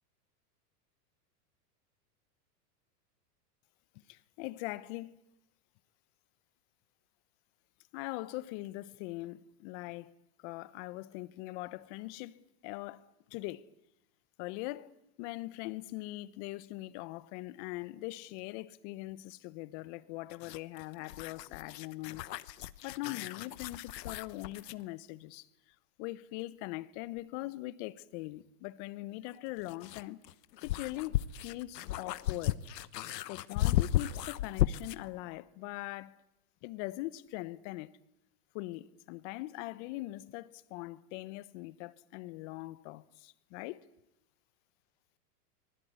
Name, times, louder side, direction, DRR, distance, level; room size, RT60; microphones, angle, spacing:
voice 1, 4.1-5.1 7.9-10.1 10.4-13.7 14.4-22.3 22.8-25.5 26.0-30.2 30.6-32.6 33.3-36.2 36.6-38.0 38.5-43.8, left 18 dB, 45° left, 1.2 m, -42 dB
sound 1, 20.3-24.8 27.2-27.3 29.3-35.1, left 13 dB, 85° left, 1.1 m, -35 dB
25.5 x 20.5 x 9.6 m
supercardioid pair, 135°, 48 cm